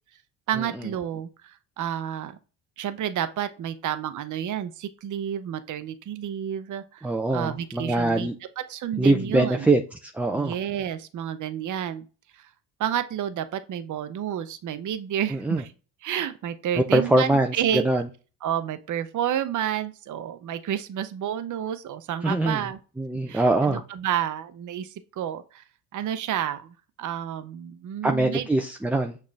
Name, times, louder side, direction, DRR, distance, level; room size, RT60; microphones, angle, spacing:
voice 1, 0.5-2.3 2.8-8.3 8.6-9.7 10.3-12.0 12.4-12.5 12.8-15.7 16.0-17.9 18.4-22.8 23.3-25.6 25.9-28.5, right 10 dB, 40° right, 11 dB, 0.7 m, -30 dB
voice 2, 7.0-8.3 9.0-10.5 15.3-15.6 16.9-18.0 22.2-22.7 23.0-23.8 28.0-29.2, right 2 dB, 5° right, 4 dB, 0.4 m, -23 dB
6.7 x 2.4 x 3.3 m, 0.34 s
hypercardioid pair, 60°, 45 cm